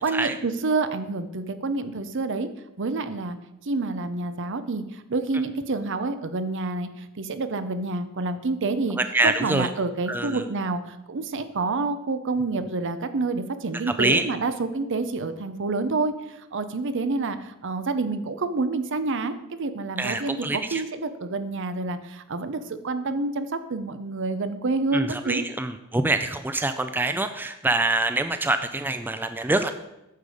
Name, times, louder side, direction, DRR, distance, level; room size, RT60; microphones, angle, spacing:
voice 1, 0.0-2.5 2.8-3.4 3.6-9.0 9.2-25.5, right 3 dB, 60° right, 11 dB, 0.7 m, -28 dB
voice 2, 9.1-9.7 10.1-10.4 14.0-14.2 20.0-20.8 24.9-29.7, right 2 dB, 10° right, 9 dB, 0.3 m, -25 dB
9.1 x 6.7 x 4.9 m, 0.92 s
head